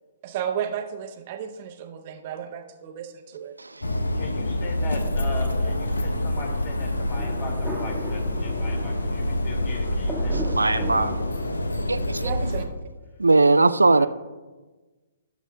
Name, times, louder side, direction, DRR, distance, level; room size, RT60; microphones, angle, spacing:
voice 1, 0.2-3.6 12.2-12.9, right 8 dB, 40° right, 7 dB, 0.7 m, -33 dB
sound 1, 3.8-12.7, left 1 dB, 75° left, 0.8 m, -27 dB
voice 2, 4.1-11.1 14.0-14.1, left 3 dB, 35° left, 2 dB, 2.3 m, -39 dB
Thunder, 7.1-11.9, equal, 15° left, 2.0 m, -36 dB
voice 3, 10.3-11.1 11.9-12.2 13.2-14.1, right 3 dB, 80° right, 13 dB, 0.3 m, -19 dB
15.0 x 7.2 x 2.3 m, 1.3 s
figure-of-eight pair, 125°, 0 cm